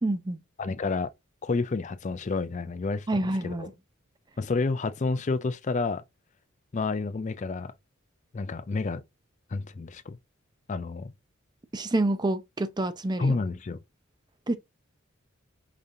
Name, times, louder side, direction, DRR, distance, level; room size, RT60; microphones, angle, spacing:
voice 1, 0.0-0.4 3.1-3.7 11.7-13.4 14.5-14.6, right 2 dB, 20° right, 0.5 m, -27 dB
voice 2, 0.6-1.1 1.4-3.1 3.4-3.7 4.4-6.0 6.7-7.7 8.3-9.0 9.5-10.2 10.7-11.1 13.2-13.8, left 3 dB, 35° left, 0.4 m, -29 dB
4.9 x 2.8 x 2.5 m
head